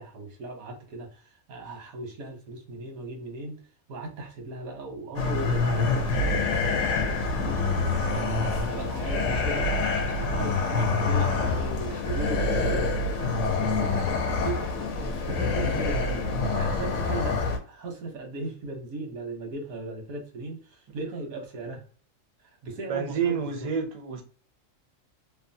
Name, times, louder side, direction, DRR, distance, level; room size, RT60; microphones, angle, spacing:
voice 1, 0.0-3.6 3.9-12.9 13.4-21.8 22.6-23.7, right 2 dB, 90° right, 1.3 m, -37 dB
sound 1, 5.2-17.6, left 3 dB, 70° left, 0.9 m, -26 dB
voice 2, 22.9-24.2, right 6 dB, 60° right, 0.3 m, -28 dB
2.9 x 2.1 x 2.6 m
omnidirectional pair, 1.4 m